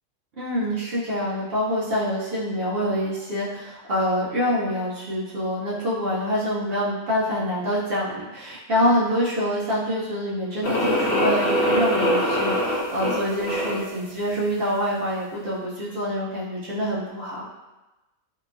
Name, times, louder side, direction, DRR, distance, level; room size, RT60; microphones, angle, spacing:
voice 1, 0.4-17.5, equal, 55° right, -7 dB, 0.7 m, -26 dB
sound 1, 10.6-13.9, equal, 65° left, 0.8 m, -23 dB
2.9 x 2.2 x 2.4 m, 1.0 s
omnidirectional pair, 1.4 m